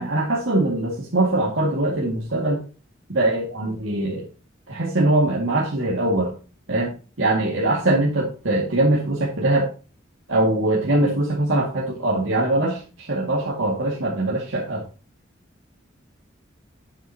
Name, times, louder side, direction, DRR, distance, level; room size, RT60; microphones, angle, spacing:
voice 1, 0.0-2.6 3.1-4.3 4.7-6.3 6.7-6.9 7.2-9.7 10.3-14.8, right 2 dB, 75° right, -4 dB, 2.2 m, -22 dB
11.0 x 7.4 x 2.9 m, 0.34 s
head